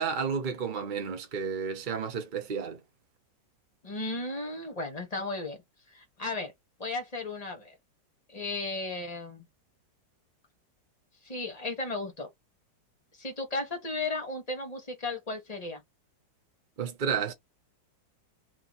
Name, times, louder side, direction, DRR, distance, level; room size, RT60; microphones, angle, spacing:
voice 1, 0.0-2.8 16.8-17.3, right 6 dB, 40° right, 0.7 m, -31 dB
voice 2, 3.8-5.6 5.9-6.5 6.8-7.7 8.3-9.4 11.2-12.3 13.2-15.8, left 2 dB, 25° left, 1.2 m, -35 dB
3.0 x 3.0 x 4.0 m
omnidirectional pair, 2.0 m